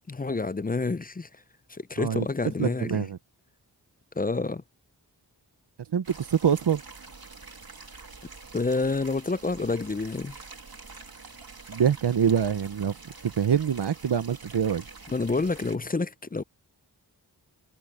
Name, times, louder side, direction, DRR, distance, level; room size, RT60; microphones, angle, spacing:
voice 1, 0.1-1.3 1.7-3.1 4.2-4.6 8.5-10.4 15.1-16.4, left 3 dB, 20° left, 0.5 m, -28 dB
voice 2, 2.6-3.2 5.9-6.8 11.7-13.0 13.2-14.8, right 8 dB, 85° right, 0.8 m, -25 dB
sound 1, 6.0-15.8, right 4 dB, 65° right, 2.8 m, -46 dB
wide cardioid pair, 50°, 40 cm